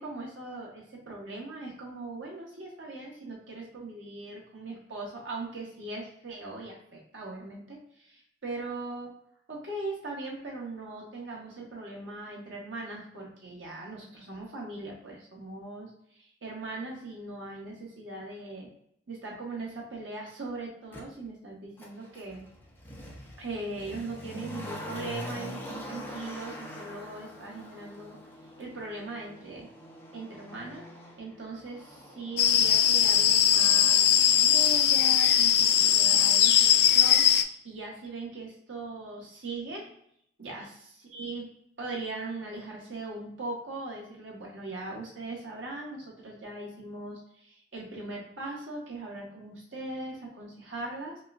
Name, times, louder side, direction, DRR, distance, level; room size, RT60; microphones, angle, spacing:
voice 1, 0.0-9.1 9.5-18.7 19.1-22.4 23.4-28.2 28.6-29.7 30.1-30.9 31.2-39.9 40.4-40.8 41.1-41.5 41.8-51.2, right 2 dB, 80° right, -3 dB, 1.4 m, -40 dB
Motor vehicle (road), 20.9-21.0 21.8-34.7 35.0-35.1, left 1 dB, 10° left, 0.7 m, -44 dB
sound 1, 32.4-37.4, left 10 dB, 55° left, 0.3 m, -21 dB
5.3 x 2.4 x 2.5 m, 0.69 s
head